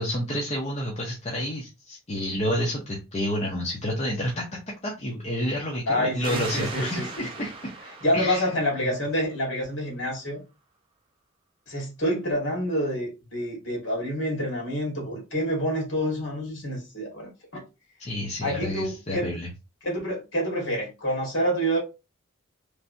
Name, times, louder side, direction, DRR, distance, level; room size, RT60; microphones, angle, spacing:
voice 1, 0.0-4.4 4.8-7.7 8.1-8.9 18.0-19.5, equal, 30° left, 0.6 m, -29 dB
voice 2, 5.9-7.2 8.0-10.4 11.7-17.7 18.4-19.3 19.8-21.8, equal, 60° left, 1.6 m, -27 dB
sound 1, 6.2-9.6, right 3 dB, 25° right, 0.5 m, -39 dB
3.2 x 2.6 x 2.6 m
head